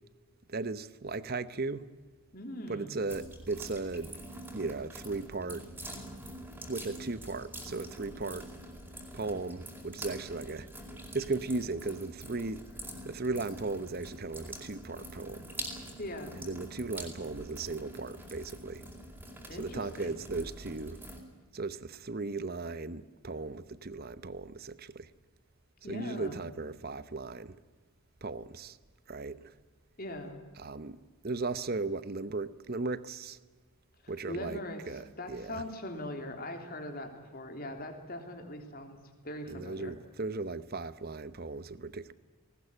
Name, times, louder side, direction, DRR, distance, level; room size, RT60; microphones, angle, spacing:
voice 1, 0.5-1.9 2.7-4.2 4.5-5.7 6.7-8.5 9.1-10.7 11.1-12.6 13.0-15.5 16.4-18.9 19.6-21.0 21.5-25.1 25.9-27.6 28.2-28.8 29.1-29.5 30.6-31.0 31.2-33.4 34.1-34.6 34.9-35.6 39.5-42.1, right 3 dB, 45° right, 15 dB, 0.9 m, -36 dB
voice 2, 2.3-3.0 16.0-16.4 19.5-20.2 25.8-26.4 30.0-30.4 34.0-39.9, left 1 dB, 40° left, 5 dB, 3.4 m, -41 dB
sound 1, 3.1-21.2, right 1 dB, 10° right, 4.7 m, -45 dB
20.0 x 19.5 x 10.0 m, 1.3 s
head